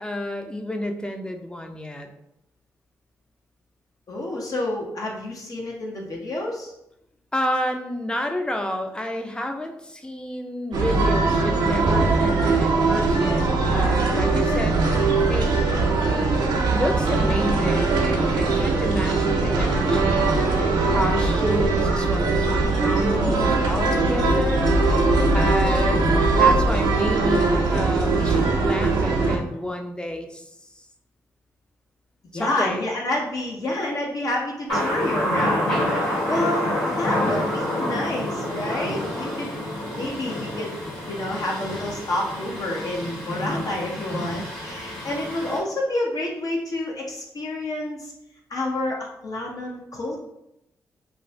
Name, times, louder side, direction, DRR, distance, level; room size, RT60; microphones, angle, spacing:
voice 1, 0.0-2.1 7.3-14.8 15.3-15.5 16.7-24.7 25.3-30.4 32.3-32.9, left 1 dB, 10° left, 4 dB, 0.5 m, -29 dB
voice 2, 4.1-6.7 32.3-35.7 36.3-39.6 39.9-40.8 41.1-48.1 48.5-50.2, left 1 dB, 50° left, -2 dB, 0.6 m, -29 dB
sound 1, 10.7-29.4, right 3 dB, 70° right, 0.6 m, -21 dB
Thunder, 34.7-45.6, left 1 dB, 90° left, 1.4 m, -28 dB
2.4 x 2.4 x 3.2 m, 0.82 s
hypercardioid pair, 40°, 8 cm